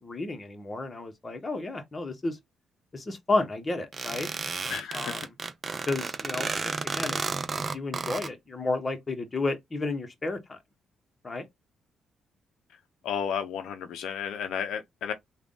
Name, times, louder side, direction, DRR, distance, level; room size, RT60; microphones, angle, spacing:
voice 1, 0.0-2.4 2.9-4.3 4.9-5.2 5.9-7.2 7.7-10.6 11.2-11.4, left 2 dB, 25° left, 1.1 m, -32 dB
sound 1, 3.9-8.3, right 4 dB, 35° right, 0.5 m, -32 dB
voice 2, 4.7-5.3 13.0-15.1, left 8 dB, 80° left, 0.6 m, -33 dB
3.5 x 2.3 x 3.7 m
cardioid pair, 90°, 0 cm